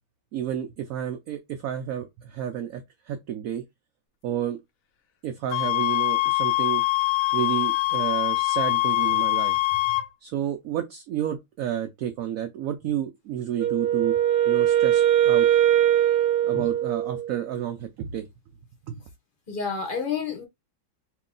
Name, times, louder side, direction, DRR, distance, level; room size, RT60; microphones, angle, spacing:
voice 1, 0.3-3.6 4.2-4.6 5.2-6.8 7.3-9.6 9.8-14.1 14.5-15.5 16.4-18.3 18.9-19.0, right 10 dB, 70° right, 0.9 m, -31 dB
sound 1, 5.5-10.1, left 21 dB, 70° left, 0.9 m, -23 dB
Wind instrument woodwind instrument, 13.6-17.5, right 11 dB, 90° right, 1.3 m, -21 dB
voice 2, 19.5-20.4, left 6 dB, 40° left, 1.0 m, -29 dB
3.0 x 2.9 x 3.7 m
omnidirectional pair, 1.7 m